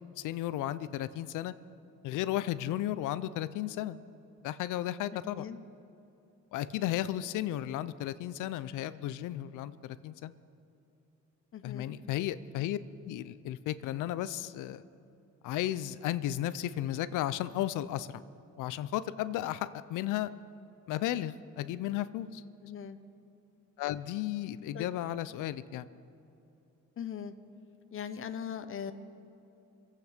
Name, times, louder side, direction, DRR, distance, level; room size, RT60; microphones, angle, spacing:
voice 1, 0.2-1.5 2.0-4.0 4.4-5.4 6.5-10.3 11.6-12.8 13.0-14.8 15.4-18.2 18.6-20.3 20.9-22.4 23.8-25.9, left 13 dB, 90° left, 15 dB, 0.6 m, -34 dB
voice 2, 5.1-5.6 11.5-11.9 22.6-23.0 24.7-24.9 27.0-27.3 27.9-28.9, left 8 dB, 45° left, 9 dB, 0.9 m, -40 dB
24.0 x 8.5 x 5.1 m, 2.9 s
cardioid pair, 90°, 30 cm